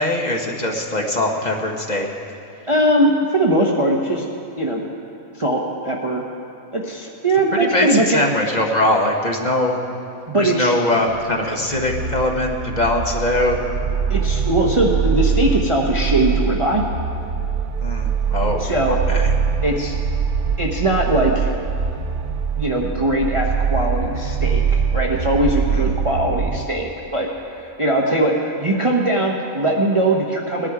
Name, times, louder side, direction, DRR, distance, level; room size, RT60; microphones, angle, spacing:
voice 1, 0.0-2.1 7.5-9.8 10.4-13.6 17.8-18.6 18.9-19.3 25.7-25.8, left 1 dB, 35° left, 1 dB, 1.1 m, -21 dB
voice 2, 2.7-4.2 4.6-4.8 5.4-6.2 6.7-8.2 10.3-10.7 14.1-16.8 18.6-19.0 19.6-20.0 20.6-21.5 22.6-30.7, right 1 dB, 25° right, -1 dB, 0.8 m, -20 dB
sound 1, 11.1-26.7, right 6 dB, 70° right, 0.5 m, -23 dB
19.0 x 10.5 x 4.8 m, 2.6 s
omnidirectional pair, 1.4 m